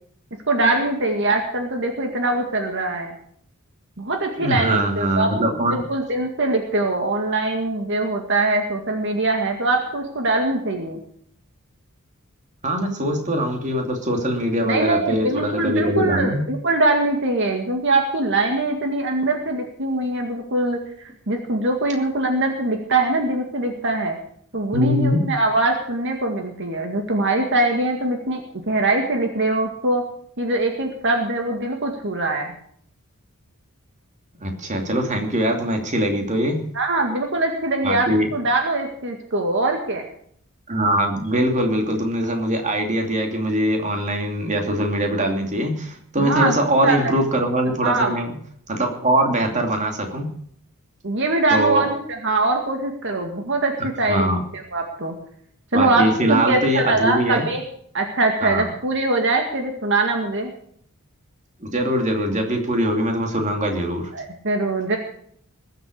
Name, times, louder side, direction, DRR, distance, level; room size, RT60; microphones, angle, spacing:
voice 1, 0.5-3.2 4.0-5.3 5.6-11.0 14.6-24.2 24.5-30.0 30.4-32.5 36.7-40.0 46.2-47.1 47.8-48.2 51.0-55.1 55.7-57.6 57.9-60.5 64.1-65.0, right 2 dB, 60° right, 3 dB, 2.0 m, -22 dB
voice 2, 4.4-5.8 12.6-16.4 24.7-25.2 34.4-36.6 37.8-38.3 40.7-48.3 48.7-50.3 51.5-51.9 54.1-54.4 55.7-57.5 58.4-58.6 61.6-64.1, right 1 dB, 35° right, 3 dB, 2.8 m, -22 dB
20.5 x 8.0 x 6.6 m, 0.64 s
head